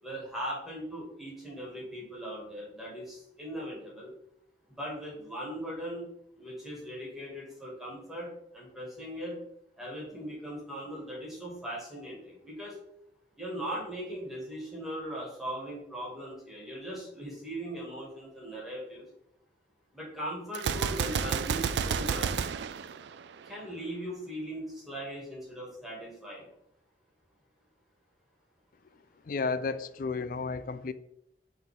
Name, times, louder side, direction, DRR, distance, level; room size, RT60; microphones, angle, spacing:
voice 1, 0.0-4.1 4.7-6.1 6.4-9.4 9.8-12.8 13.4-19.0 19.9-22.4 23.4-26.5, equal, ahead, -4 dB, 2.3 m, -39 dB
Gunshot gunfire, 20.5-23.7, right 6 dB, 65° right, 0.3 m, -31 dB
voice 2, 29.3-30.9, left 4 dB, 50° left, 13 dB, 0.4 m, -32 dB
7.7 x 3.9 x 3.7 m, 0.76 s
head